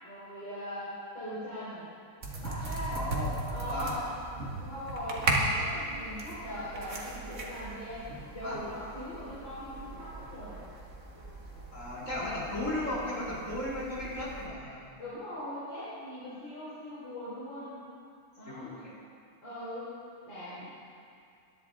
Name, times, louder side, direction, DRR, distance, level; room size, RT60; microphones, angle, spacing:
voice 1, 0.0-1.9 2.4-3.0 3.5-4.0 4.6-8.1 8.3-10.6 15.0-17.8 18.4-18.7 19.4-19.9 20.2-20.7, equal, 65° left, -11 dB, 4.3 m, -40 dB
sound 1, 2.2-14.5, right 2 dB, 40° right, 1.7 m, -37 dB
voice 2, 2.9-3.4 3.6-4.0 8.4-8.6 11.7-14.8 18.5-19.0, left 1 dB, 40° left, -6 dB, 3.0 m, -35 dB
21.0 x 10.5 x 3.7 m, 2.4 s
omnidirectional pair, 2.2 m